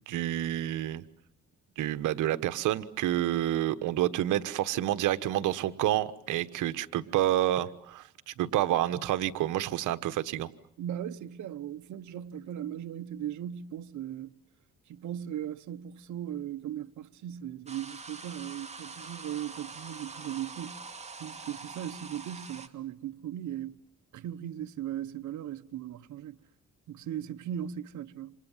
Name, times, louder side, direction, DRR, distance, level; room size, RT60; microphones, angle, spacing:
voice 1, 0.1-1.0 1.8-10.5, right 13 dB, 85° right, 1.3 m, -29 dB
voice 2, 10.8-14.3 14.9-23.8 24.1-26.4 26.9-28.3, right 10 dB, 70° right, 1.1 m, -38 dB
sound 1, 17.7-22.7, right 4 dB, 20° right, 2.4 m, -44 dB
28.5 x 27.0 x 7.4 m
cardioid pair, 90°, 30 cm